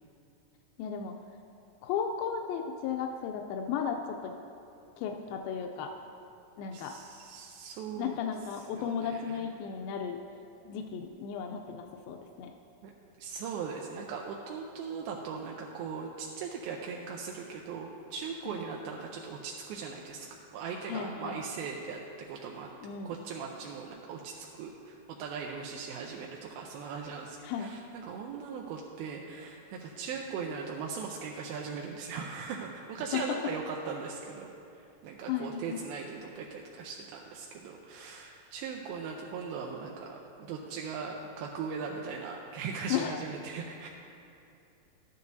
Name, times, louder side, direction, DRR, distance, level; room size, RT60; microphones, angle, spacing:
voice 1, 0.8-1.1 1.8-4.3 5.0-5.9 6.6-7.0 8.0-10.2 10.7-12.5 18.5-18.6 20.9-21.4 22.8-23.2 27.4-27.7 33.1-33.2 35.3-35.8 42.9-43.2, left 7 dB, 85° left, 2 dB, 2.3 m, -35 dB
voice 2, 6.7-8.2 8.8-9.4 12.8-12.9 13.2-20.3 20.5-22.7 23.1-43.9, right 5 dB, 90° right, 0 dB, 2.5 m, -39 dB
13.0 x 9.3 x 2.6 m, 2.8 s
omnidirectional pair, 4.3 m